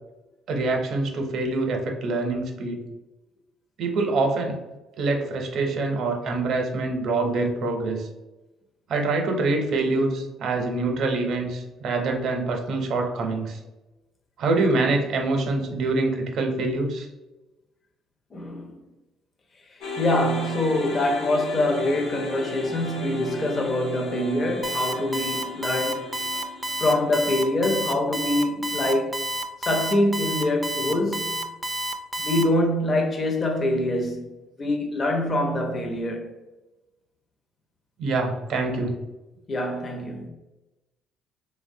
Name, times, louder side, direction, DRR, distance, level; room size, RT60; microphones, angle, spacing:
voice 1, 0.5-2.8 3.8-4.6 5.0-8.1 8.9-13.6 14.4-17.1 38.0-38.9, right 3 dB, 60° right, 0.5 m, -25 dB
voice 2, 18.3-18.8 20.0-26.1 26.8-29.2 29.6-31.4 32.2-34.3 34.6-36.3 39.5-40.3, left 1 dB, 35° left, 0.5 m, -24 dB
sound 1, 19.8-28.1, left 3 dB, 70° left, 0.9 m, -36 dB
Alarm, 24.6-32.4, right 1 dB, 15° right, 0.3 m, -29 dB
3.1 x 2.1 x 2.6 m
cardioid pair, 100°, 0 cm